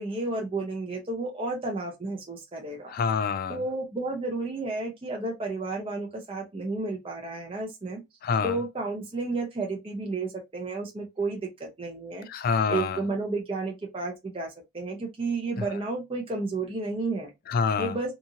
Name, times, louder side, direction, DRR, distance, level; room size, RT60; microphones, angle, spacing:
voice 1, 0.0-2.9 3.5-8.0 8.4-12.3 12.7-17.3 17.8-18.1, right 3 dB, 25° right, 0.6 m, -32 dB
voice 2, 2.9-3.6 8.2-8.6 12.3-13.0 15.6-15.7 17.5-17.9, left 5 dB, 45° left, 0.3 m, -26 dB
2.8 x 2.5 x 2.6 m
head